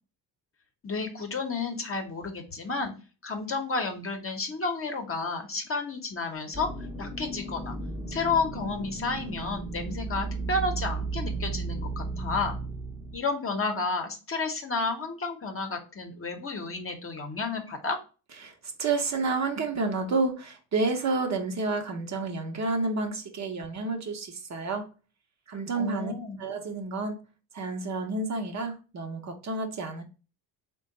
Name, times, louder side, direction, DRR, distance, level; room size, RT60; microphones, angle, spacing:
voice 1, 0.8-2.9 3.2-6.7 7.0-7.8 8.1-12.6 13.1-18.0 25.7-26.4, left 3 dB, 30° left, 0.9 m, -31 dB
sound 1, 6.5-13.2, right 3 dB, ahead, 0.7 m, -34 dB
voice 2, 18.4-24.9 25.5-26.1 26.4-27.2 27.5-30.0, right 3 dB, 40° right, 0.8 m, -30 dB
3.4 x 2.3 x 3.9 m
supercardioid pair, 75°, 42 cm